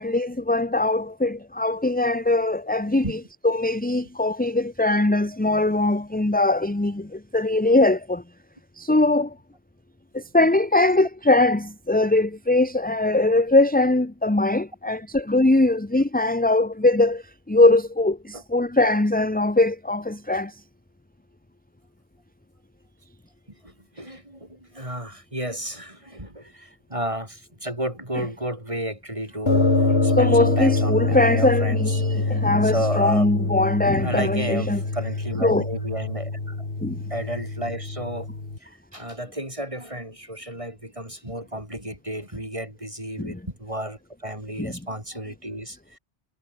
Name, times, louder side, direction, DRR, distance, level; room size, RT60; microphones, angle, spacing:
voice 1, 0.0-3.2 3.4-8.2 8.8-9.3 10.1-20.5 30.2-34.8 35.4-35.6 36.8-37.0 43.2-43.3 44.6-44.7, left 2 dB, 10° left, 0.9 m, -21 dB
voice 2, 23.6-33.6 34.0-36.6 37.1-38.3 38.6-46.0, right 1 dB, 30° right, 8.1 m, -33 dB
sound 1, 29.5-38.6, left 3 dB, 70° left, 3.3 m, -25 dB
omnidirectional pair, 1.1 m